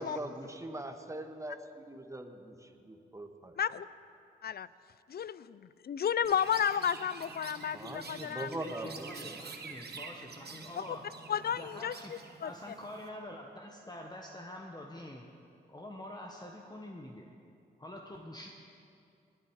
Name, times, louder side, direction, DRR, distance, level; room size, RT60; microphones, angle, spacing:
voice 1, 0.0-3.6 7.7-9.4, right 1 dB, 15° right, 6 dB, 1.5 m, -42 dB
voice 2, 3.6-3.9 4.4-4.7 5.1-8.7 10.8-11.0 11.3-12.5, left 8 dB, 55° left, 17 dB, 0.5 m, -33 dB
Chirp tweet, 6.2-13.1, right 5 dB, 55° right, 1.3 m, -48 dB
voice 3, 8.6-11.0 11.6-12.1 12.4-15.3 15.7-17.3 17.8-18.5, left 1 dB, 20° left, 1 dB, 1.3 m, -46 dB
20.5 x 8.8 x 4.8 m, 2.5 s
supercardioid pair, 45°, 20 cm